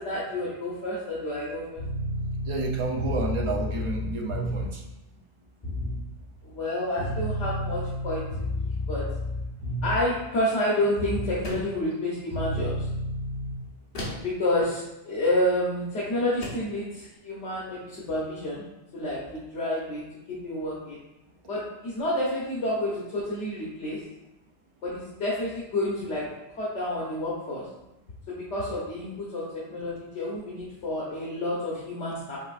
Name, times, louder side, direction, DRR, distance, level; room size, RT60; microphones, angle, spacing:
voice 1, 0.0-1.8 6.4-8.2 8.6-9.0 9.8-12.9 14.1-18.6 18.9-20.0 20.3-21.0 21.5-24.0 24.8-26.2 26.6-27.7 28.3-29.4 29.7-32.4, left 1 dB, 80° left, -7 dB, 1.2 m, -29 dB
sound 1, 1.8-4.8 5.6-6.0 7.0-10.2 11.0-11.4 12.3-13.5, left 1 dB, 15° left, 1.4 m, -31 dB
voice 2, 2.4-4.8 14.1-14.3, right 3 dB, 35° right, 0 dB, 0.5 m, -30 dB
sound 2, 11.4-11.9 13.9-14.4 15.7-15.9 16.4-16.8, left 1 dB, 50° left, 1.1 m, -36 dB
5.8 x 3.3 x 2.5 m, 0.95 s
omnidirectional pair, 1.2 m